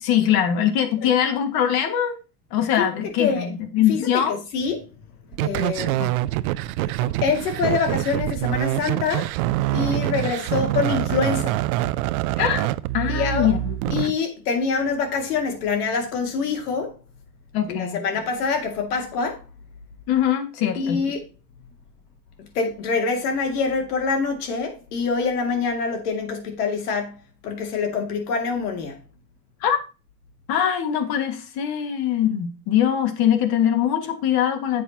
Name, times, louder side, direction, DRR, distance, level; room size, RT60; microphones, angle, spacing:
voice 1, 0.0-2.2 2.5-4.4 6.0-6.1 12.4-12.7 12.9-14.0 17.5-18.0 20.1-21.0 29.6-29.8 30.5-34.8, left 9 dB, 55° left, 2.0 m, -22 dB
voice 2, 3.9-4.9 5.4-6.1 6.9-9.3 9.7-11.6 13.1-13.5 13.9-17.0 17.7-19.4 20.8-21.3 22.4-27.2 27.4-29.0, left 5 dB, 85° left, 2.6 m, -25 dB
sound 1, 5.3-14.1, right 16 dB, 65° right, 0.6 m, -25 dB
10.0 x 7.5 x 2.9 m
supercardioid pair, 110°, 45 cm